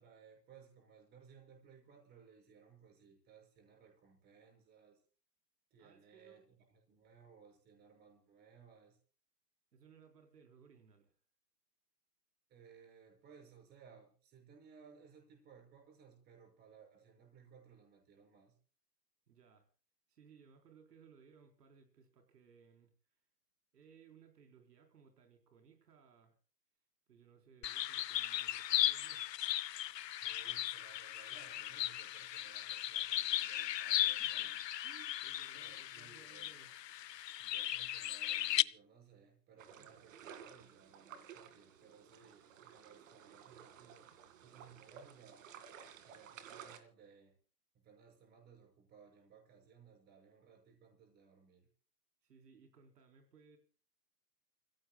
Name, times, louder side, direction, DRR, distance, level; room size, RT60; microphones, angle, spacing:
voice 1, 0.0-5.0 5.7-9.0 12.5-18.6 30.2-34.6 35.5-36.5 37.4-44.1 44.4-45.5 46.0-47.4 47.7-51.7, right 6 dB, 20° right, 3 dB, 6.3 m, -61 dB
voice 2, 5.8-6.4 9.7-11.1 19.3-19.7 20.1-22.9 23.7-26.4 27.1-29.3 34.1-34.5 34.8-36.7 39.8-40.0 52.2-53.6, right 6 dB, 70° right, 4 dB, 4.4 m, -63 dB
sound 1, 27.6-38.6, left 13 dB, 80° left, 0.8 m, -37 dB
sound 2, 39.6-46.8, right 8 dB, 50° right, 2.4 m, -55 dB
29.5 x 16.5 x 2.3 m, 0.38 s
hypercardioid pair, 160°, 49 cm